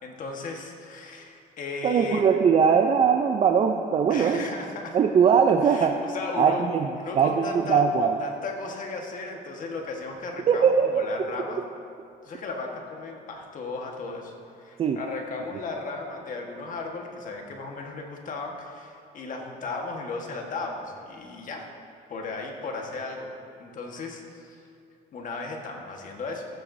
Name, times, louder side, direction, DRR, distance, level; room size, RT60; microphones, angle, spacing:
voice 1, 0.0-2.3 4.1-5.0 5.6-6.7 7.0-11.6 12.2-21.7 22.1-23.3 23.6-24.6 25.1-26.4, left 3 dB, 50° left, 1 dB, 1.5 m, -35 dB
voice 2, 1.8-4.4 4.9-5.9 6.4-8.2 10.5-11.2 14.8-15.0, right 6 dB, 35° right, 5 dB, 0.5 m, -21 dB
17.5 x 9.0 x 2.7 m, 2.5 s
cardioid pair, 110°, 17 cm